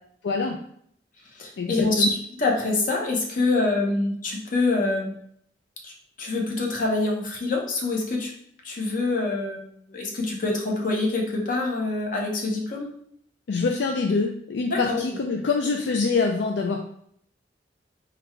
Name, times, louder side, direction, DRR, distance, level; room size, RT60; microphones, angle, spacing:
voice 1, 0.2-0.6 1.6-2.1 13.5-16.8, left 4 dB, 70° left, 2 dB, 0.4 m, -25 dB
voice 2, 1.3-5.1 5.8-5.9 6.2-8.3 8.6-12.9 14.7-15.0, left 3 dB, 50° left, 0 dB, 0.8 m, -25 dB
3.8 x 2.3 x 4.4 m, 0.67 s
head